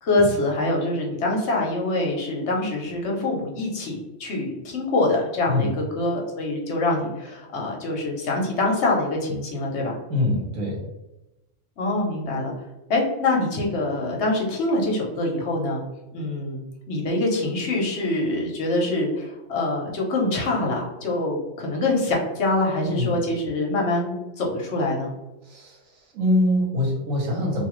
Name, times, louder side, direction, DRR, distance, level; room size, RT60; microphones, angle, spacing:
voice 1, 0.0-10.0 11.8-12.5 12.9-15.8 16.1-25.1, left 2 dB, 65° left, -1 dB, 0.9 m, -25 dB
voice 2, 10.1-10.8 22.8-23.1 25.5-25.8 26.1-27.7, left 1 dB, 80° right, -2 dB, 1.3 m, -23 dB
2.5 x 2.3 x 3.0 m, 0.99 s
omnidirectional pair, 1.4 m